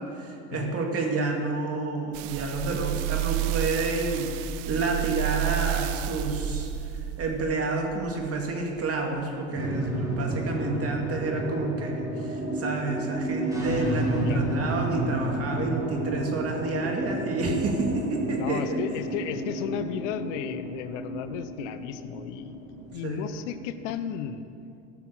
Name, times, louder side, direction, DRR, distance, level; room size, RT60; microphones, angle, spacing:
voice 1, 0.0-18.8 23.0-23.2, right 3 dB, 40° right, 1 dB, 2.2 m, -29 dB
sound 1, 2.1-8.6 9.2-9.3, right 12 dB, 70° right, 0.6 m, -31 dB
sound 2, 9.5-24.2, right 1 dB, 10° right, 2.6 m, -31 dB
voice 2, 18.3-24.5, left 9 dB, 90° left, 11 dB, 0.7 m, -34 dB
15.0 x 6.1 x 6.3 m, 2.5 s
supercardioid pair, 100°, 35 cm